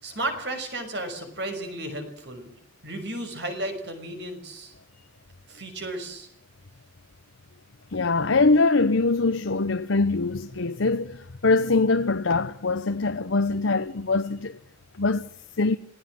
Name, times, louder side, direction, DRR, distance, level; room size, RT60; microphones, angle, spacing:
voice 1, 0.0-2.5 2.8-4.7 5.5-6.3, right 1 dB, 60° right, 5.9 m, -33 dB
voice 2, 7.9-14.6 15.0-15.3 15.6-15.8, left 3 dB, 80° left, 0.9 m, -23 dB
26.5 x 17.0 x 7.7 m
head